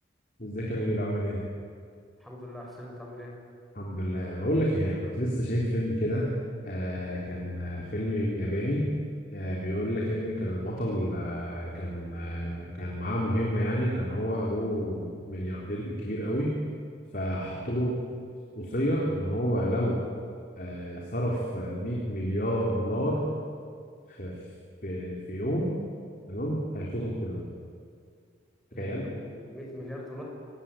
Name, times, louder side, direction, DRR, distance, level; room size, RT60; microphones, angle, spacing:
voice 1, 0.4-1.4 3.8-6.3 6.6-8.8 9.3-16.5 17.1-18.0 18.6-20.0 20.6-23.2 24.2-24.3 24.8-25.7 26.3-27.4 28.8-29.1, equal, 45° left, -3 dB, 3.7 m, -30 dB
voice 2, 2.2-3.3 28.7-30.2, left 1 dB, ahead, -3 dB, 6.1 m, -42 dB
25.5 x 20.0 x 9.1 m, 2.2 s
head